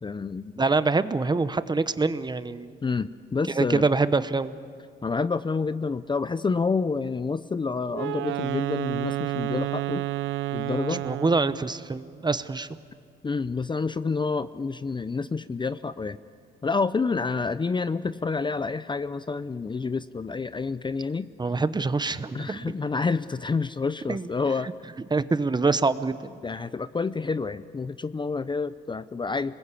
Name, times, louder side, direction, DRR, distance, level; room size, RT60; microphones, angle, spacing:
voice 1, 0.0-0.5 2.8-3.8 5.0-10.0 10.5-11.0 13.2-16.2 16.6-21.3 22.3-24.7 26.4-29.6, left 4 dB, 25° left, 14 dB, 0.6 m, -28 dB
voice 2, 0.6-2.8 3.5-4.5 10.9-12.7 21.4-22.7 24.1-24.3 25.1-26.3, right 3 dB, 20° right, 13 dB, 0.9 m, -25 dB
Wind instrument woodwind instrument, 7.9-11.6, right 16 dB, 80° right, 0.5 m, -30 dB
27.5 x 20.5 x 8.4 m, 2.2 s
cardioid pair, 90°, 20 cm